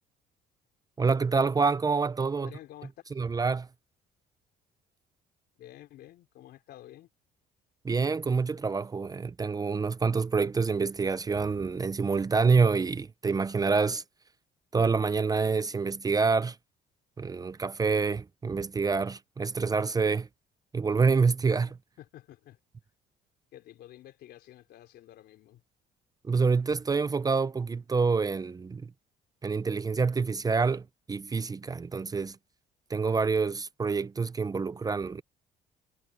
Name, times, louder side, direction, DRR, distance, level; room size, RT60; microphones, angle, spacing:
voice 1, 1.0-2.5 3.2-3.7 7.8-14.0 14.7-16.6 17.2-20.3 20.7-21.8 26.2-28.9 29.4-32.4 32.9-35.2, right 4 dB, 20° right, 0.6 m, -27 dB
voice 2, 2.4-3.2 5.6-7.1 22.0-22.6 23.5-25.6, left 13 dB, 75° left, 3.7 m, -50 dB
cardioid pair, 110°, 17 cm